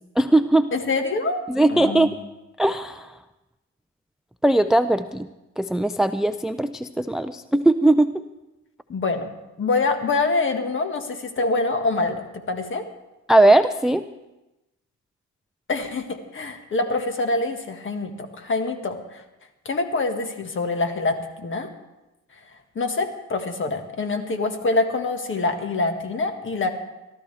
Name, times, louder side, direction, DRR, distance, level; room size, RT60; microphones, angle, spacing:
voice 1, 0.2-0.7 1.5-2.1 2.6-3.1 4.4-5.3 5.6-8.1 13.3-14.0, right 1 dB, ahead, 12 dB, 0.4 m, -19 dB
voice 2, 0.7-1.4 1.7-2.1 8.9-9.3 9.6-12.9 15.7-19.2 19.6-21.7 22.7-26.7, left 3 dB, 40° left, 6 dB, 1.7 m, -25 dB
22.5 x 13.0 x 3.4 m, 1.0 s
cardioid pair, 90°, 30 cm